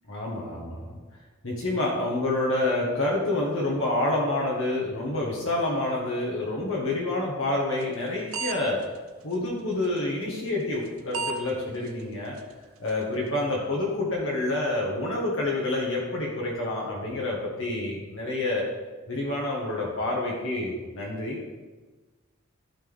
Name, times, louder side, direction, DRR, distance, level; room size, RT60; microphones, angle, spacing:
voice 1, 0.1-1.0 1.4-8.8 9.2-12.4 12.8-18.6 19.1-21.4, left 2 dB, 65° left, -4 dB, 1.5 m, -28 dB
sound 1, 7.8-8.0 8.3-8.5 8.8-8.9 9.8-10.0 10.9-11.0 11.1-11.4 11.9-12.0 12.4-12.5 12.9-13.0, right 5 dB, 80° right, 0.7 m, -30 dB
13.0 x 4.5 x 3.5 m, 1.3 s
head